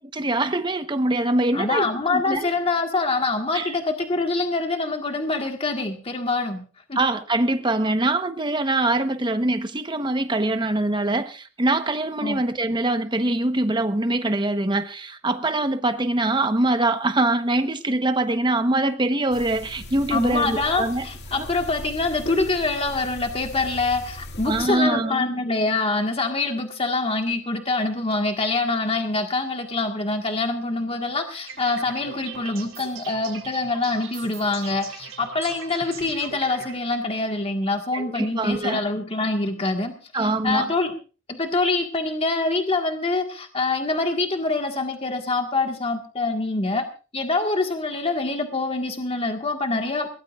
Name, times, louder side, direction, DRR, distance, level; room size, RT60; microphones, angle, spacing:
voice 1, 0.1-2.5 3.5-3.7 7.0-21.0 21.4-21.5 24.4-25.2 37.9-38.8 40.1-40.7, right 2 dB, 25° right, 1.1 m, -23 dB
voice 2, 1.5-6.6 6.9-7.0 12.2-12.4 20.1-40.9 41.3-46.8 47.1-50.1, left 3 dB, 30° left, 1.7 m, -25 dB
sound 1, 19.3-24.7, left 1 dB, 55° left, 2.2 m, -39 dB
sound 2, 31.5-36.7, right 6 dB, 90° right, 4.0 m, -40 dB
22.0 x 18.0 x 2.5 m
head